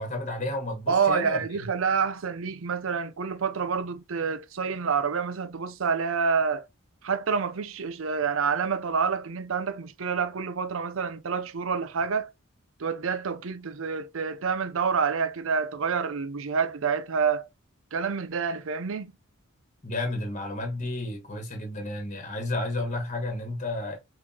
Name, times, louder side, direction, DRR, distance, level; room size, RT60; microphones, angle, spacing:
voice 1, 0.0-1.4 19.8-24.0, left 2 dB, 35° left, 1.3 m, -32 dB
voice 2, 0.9-6.7 7.0-12.3 12.8-17.5 17.9-19.1, right 5 dB, 70° right, 0.6 m, -28 dB
5.3 x 3.2 x 2.8 m
head